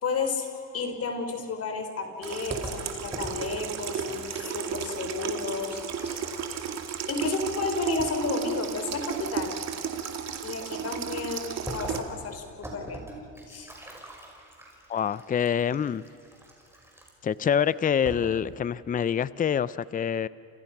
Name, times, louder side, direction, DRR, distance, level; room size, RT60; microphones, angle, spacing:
voice 1, 0.0-6.3 7.1-9.6 10.4-13.0 13.5-13.7, left 4 dB, 50° left, 6 dB, 4.4 m, -32 dB
Water tap faucet / Sink (filling or washing), 2.2-12.0, right 7 dB, 55° right, 2.5 m, -34 dB
sound 1, 2.5-7.0 7.2-8.1 11.7-17.4 17.8-17.9 18.1-18.5, right 1 dB, 10° right, 5.4 m, -43 dB
voice 2, 14.9-16.0 17.2-20.3, left 8 dB, 25° left, 18 dB, 0.5 m, -26 dB
30.0 x 28.0 x 6.0 m, 2.6 s
cardioid pair, 120°, 31 cm